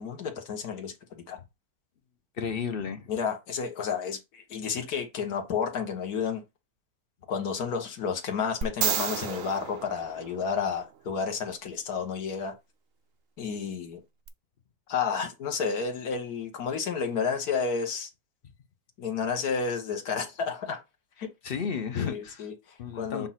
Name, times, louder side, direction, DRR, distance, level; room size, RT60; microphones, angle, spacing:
voice 1, 0.0-1.4 3.1-6.4 7.3-12.5 13.4-14.0 14.9-18.1 19.0-20.8 21.2-21.3 21.9-23.3, left 6 dB, 75° left, 1.7 m, -31 dB
voice 2, 2.4-3.1 21.4-22.4 22.8-23.3, left 6 dB, 45° left, 0.8 m, -32 dB
sound 1, 8.6-10.9 14.3-14.4, right 7 dB, 65° right, 1.1 m, -31 dB
7.3 x 2.6 x 5.7 m
omnidirectional pair, 1.6 m